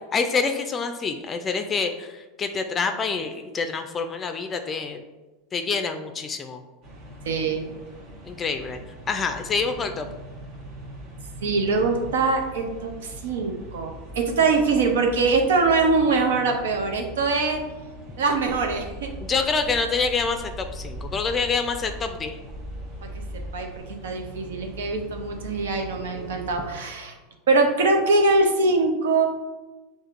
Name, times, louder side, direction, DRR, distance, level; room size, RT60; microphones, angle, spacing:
voice 1, 0.1-5.0 5.5-6.6 8.2-8.8 9.1-10.1 19.2-22.4, left 4 dB, 30° left, 6 dB, 0.4 m, -26 dB
sound 1, 6.8-26.7, equal, 50° right, 1.0 m, -42 dB
voice 2, 7.3-7.6 11.4-17.6 18.2-19.1 23.0-23.2 23.5-27.1 27.5-29.3, right 3 dB, 85° right, 4 dB, 0.6 m, -23 dB
sound 2, 18.5-23.8, equal, 30° right, 1.0 m, -40 dB
6.4 x 2.6 x 2.5 m, 1.1 s
hypercardioid pair, 100°, 0 cm